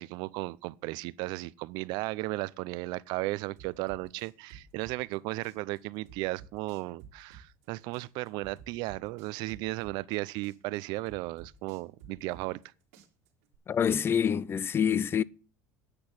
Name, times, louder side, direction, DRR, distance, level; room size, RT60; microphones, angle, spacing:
voice 1, 0.0-12.6, right 20 dB, 70° right, 0.6 m, -35 dB
sound 1, 3.6-5.2 5.4-7.7 7.9-10.2 10.4-12.7 12.9-13.6, right 7 dB, 90° right, 3.0 m, -52 dB
voice 2, 13.7-15.2, left 8 dB, 30° left, 0.5 m, -26 dB
9.9 x 6.1 x 8.3 m
supercardioid pair, 105°, 8 cm